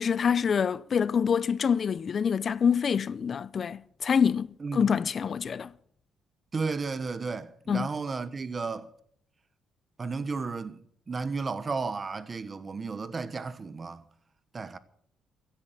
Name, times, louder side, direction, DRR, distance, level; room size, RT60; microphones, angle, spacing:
voice 1, 0.0-5.7 7.7-7.9, left 7 dB, 50° left, 0.5 m, -26 dB
voice 2, 4.6-4.9 6.5-8.9 10.0-14.0 14.5-14.8, right 4 dB, 35° right, 1.2 m, -33 dB
15.5 x 10.5 x 7.6 m
cardioid pair, 90°, 0 cm